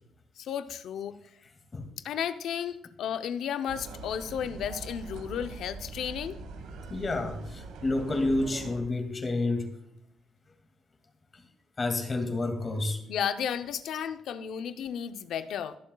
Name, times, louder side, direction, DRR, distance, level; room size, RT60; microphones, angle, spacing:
voice 1, 0.4-1.2 2.0-6.4 13.1-15.8, left 8 dB, 75° left, 10 dB, 0.7 m, -33 dB
sound 1, 3.7-8.8, right 4 dB, 90° right, 1.4 m, -43 dB
voice 2, 6.9-9.7 11.3-11.4 11.8-13.0, left 2 dB, 35° left, 6 dB, 2.2 m, -29 dB
21.5 x 7.4 x 2.3 m, 0.77 s
cardioid pair, 90°, 0 cm